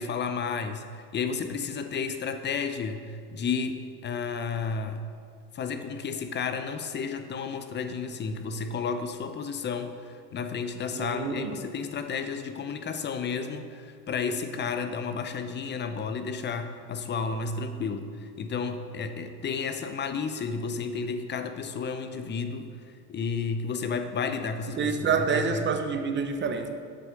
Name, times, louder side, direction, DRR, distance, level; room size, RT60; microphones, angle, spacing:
voice 1, 0.0-5.0 5.5-18.1 18.4-22.7 23.1-25.6, left 5 dB, 25° left, 8 dB, 0.6 m, -32 dB
voice 2, 11.0-11.5 24.8-26.7, right 5 dB, 25° right, 7 dB, 0.8 m, -27 dB
7.7 x 6.3 x 5.2 m, 2.2 s
hypercardioid pair, 80°, 45 cm